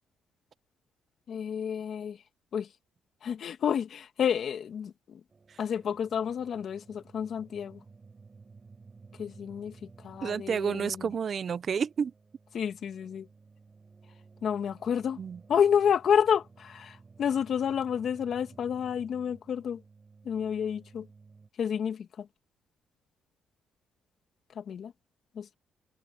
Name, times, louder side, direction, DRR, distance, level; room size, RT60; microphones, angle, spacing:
voice 1, 1.3-2.2 2.5-2.7 3.2-5.2 5.6-7.8 9.2-9.8 10.0-11.1 12.5-13.3 14.4-15.2 15.5-19.8 20.2-21.1 21.6-22.3 24.6-24.9 25.4-25.5, left 8 dB, 60° left, 2.4 m, -30 dB
sound 1, 5.3-21.5, right 4 dB, 30° right, 7.0 m, -55 dB
voice 2, 10.2-12.1 15.2-15.4, right 6 dB, 50° right, 0.7 m, -30 dB
cardioid pair, 90°, 0 cm